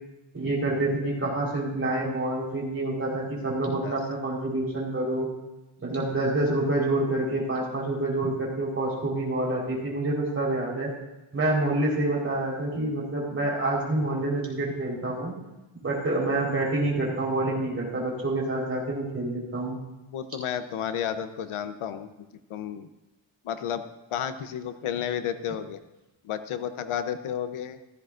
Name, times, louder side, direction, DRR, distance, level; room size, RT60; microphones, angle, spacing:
voice 1, 0.3-5.3 5.8-10.9 11.3-15.3 15.8-19.8, right 2 dB, 25° right, -3 dB, 4.2 m, -27 dB
voice 2, 20.1-22.1 22.5-22.9 23.4-23.8 24.1-25.8 26.2-27.8, left 9 dB, 80° left, 10 dB, 0.9 m, -32 dB
15.5 x 14.0 x 2.5 m, 1.0 s
wide cardioid pair, 150°, 49 cm